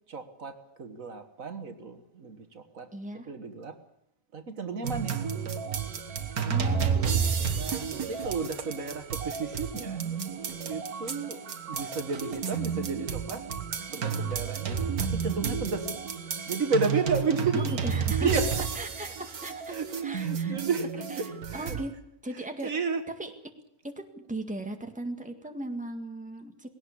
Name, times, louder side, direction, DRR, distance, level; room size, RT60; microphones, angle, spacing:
voice 1, 0.1-2.9 3.3-3.8 4.3-5.2 7.5-11.4 11.7-13.4 13.9-16.0 16.5-17.7 18.2-18.7 19.0-19.3 19.7-21.8 22.3-23.1, right 4 dB, 65° right, 8 dB, 1.9 m, -33 dB
voice 2, 2.9-3.3 6.5-7.2 17.5-18.5 18.8-20.5 21.0-21.1 21.5-21.9 22.2-22.7 23.2-23.3 23.8-26.7, right 1 dB, 5° right, 5 dB, 1.9 m, -37 dB
sound 1, 4.8-21.8, right 6 dB, 90° right, 2.0 m, -31 dB
19.5 x 17.0 x 8.5 m, 0.75 s
omnidirectional pair, 1.5 m